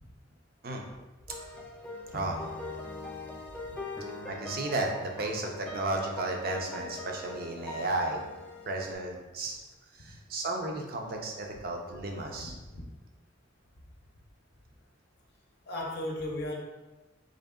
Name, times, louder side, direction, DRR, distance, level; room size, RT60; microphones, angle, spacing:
sound 1, 1.3-8.9, left 2 dB, 5° left, 0.4 m, -42 dB
voice 1, 2.1-2.4 4.3-8.2 8.7-9.6 9.9-12.5, right 2 dB, 50° right, 1 dB, 0.6 m, -33 dB
voice 2, 12.2-12.9 15.7-16.6, left 1 dB, 55° left, -1 dB, 0.6 m, -36 dB
3.9 x 3.1 x 3.6 m, 1.1 s
head